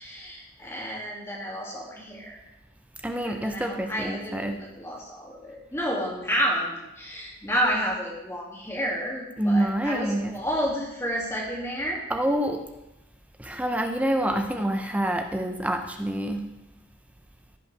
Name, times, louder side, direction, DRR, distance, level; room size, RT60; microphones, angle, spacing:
voice 1, 0.0-2.3 3.2-12.0, equal, 10° left, -4 dB, 2.3 m, -30 dB
voice 2, 3.0-4.6 9.4-10.4 12.1-12.6 13.4-16.5, right 1 dB, 5° right, 5 dB, 0.5 m, -27 dB
15.5 x 5.5 x 3.4 m, 0.94 s
head